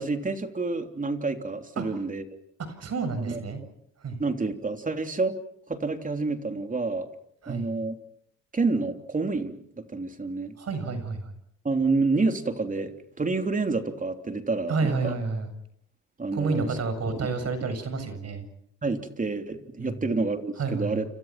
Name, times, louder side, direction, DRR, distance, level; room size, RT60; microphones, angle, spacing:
voice 1, 0.0-2.2 3.3-3.4 4.2-5.4 5.7-7.1 7.5-8.0 8.5-10.6 11.7-15.1 16.2-16.7 18.8-21.1, right 3 dB, 25° right, 6 dB, 3.3 m, -28 dB
voice 2, 2.7-3.6 4.0-4.2 7.4-7.7 10.6-11.3 14.7-15.5 16.3-18.5 19.8-20.1 20.6-21.0, right 4 dB, 55° right, 10 dB, 7.2 m, -30 dB
30.0 x 27.0 x 6.1 m, 0.71 s
cardioid pair, 90°, 30 cm